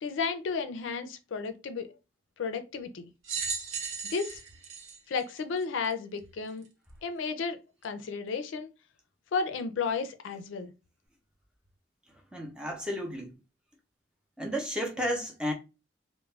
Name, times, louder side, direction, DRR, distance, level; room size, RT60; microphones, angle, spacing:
voice 1, 0.0-1.9 2.4-3.1 4.0-4.4 5.1-6.7 7.0-8.7 9.3-10.7, left 5 dB, 80° left, 0.4 m, -33 dB
sound 1, 3.2-5.9 6.6-6.7 7.8-7.9, right 5 dB, 90° right, 0.8 m, -36 dB
voice 2, 12.3-13.3 14.4-15.5, equal, 5° right, 0.5 m, -32 dB
2.3 x 2.0 x 3.2 m
head